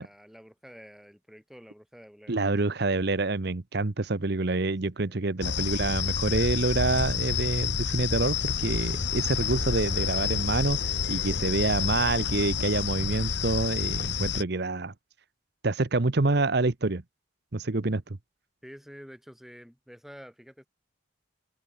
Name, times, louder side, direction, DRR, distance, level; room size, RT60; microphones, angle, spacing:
voice 1, 0.0-2.5 5.0-5.5 14.2-14.3 18.6-20.7, equal, ahead, 6.3 m, -49 dB
voice 2, 2.3-14.9 15.6-17.0 17.5-18.0, right 3 dB, 55° right, 1.0 m, -27 dB
sound 1, 5.4-14.4, left 6 dB, 60° left, 1.1 m, -29 dB
head